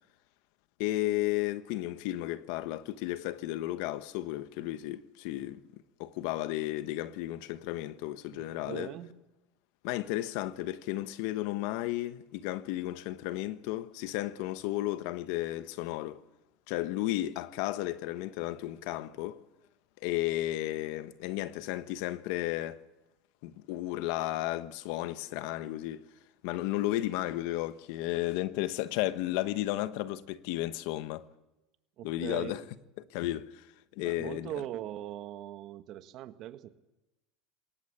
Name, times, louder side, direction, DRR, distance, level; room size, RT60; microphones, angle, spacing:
voice 1, 0.8-5.6 6.0-8.9 9.8-16.2 16.7-19.4 20.0-22.8 23.4-26.0 26.4-31.3 32.0-32.6 33.1-33.7 34.0-34.6, left 15 dB, 70° left, 1.1 m, -33 dB
voice 2, 8.3-9.1 32.0-32.6 34.0-36.7, right 13 dB, 55° right, 1.6 m, -41 dB
21.5 x 18.5 x 8.7 m
supercardioid pair, 105°, 0 cm